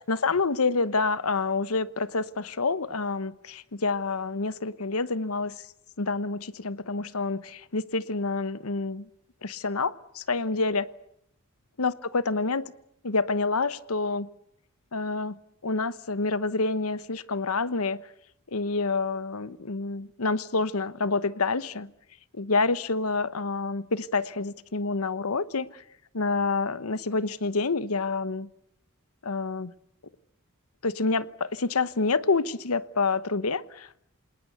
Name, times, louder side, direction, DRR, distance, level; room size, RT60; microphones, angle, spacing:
voice 1, 0.1-5.6 6.0-9.1 9.4-10.9 11.8-12.7 13.0-14.3 14.9-18.0 18.5-21.9 22.3-25.8 26.1-28.5 29.2-29.7 30.8-34.0, left 3 dB, 85° left, 1.1 m, -28 dB
27.5 x 19.0 x 8.2 m
head